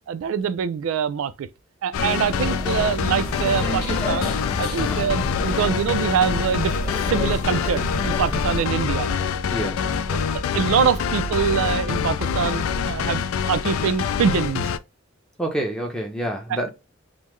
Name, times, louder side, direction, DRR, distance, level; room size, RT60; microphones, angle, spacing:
voice 1, 0.1-1.5 1.8-4.3 4.6-6.7 7.1-9.1 10.1-10.3 10.5-13.2 13.5-14.7 16.5-16.7, right 7 dB, 75° right, 0.3 m, -24 dB
sound 1, 1.9-14.8, left 7 dB, 80° left, 0.3 m, -25 dB
sound 2, 1.9-8.7, left 2 dB, 45° left, 1.2 m, -31 dB
sound 3, 3.1-13.0, equal, 25° left, 1.4 m, -36 dB
voice 2, 9.5-9.9 15.4-16.7, right 1 dB, 5° left, 0.6 m, -28 dB
3.6 x 2.0 x 3.1 m
head